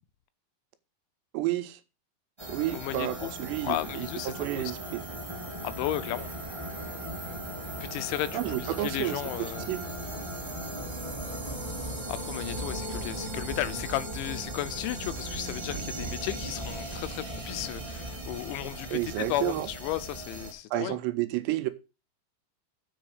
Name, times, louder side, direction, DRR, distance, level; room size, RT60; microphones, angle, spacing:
voice 1, 1.3-1.8 2.5-5.0 8.3-9.2 9.7-9.8 18.9-19.7 20.7-21.7, right 14 dB, 85° right, 2.8 m, -30 dB
sound 1, 2.4-20.5, right 1 dB, 30° right, 0.5 m, -37 dB
voice 2, 2.7-3.4 3.6-4.7 5.6-6.4 7.8-9.7 12.1-21.0, left 14 dB, 90° left, 3.1 m, -34 dB
7.8 x 5.3 x 6.3 m
omnidirectional pair, 5.2 m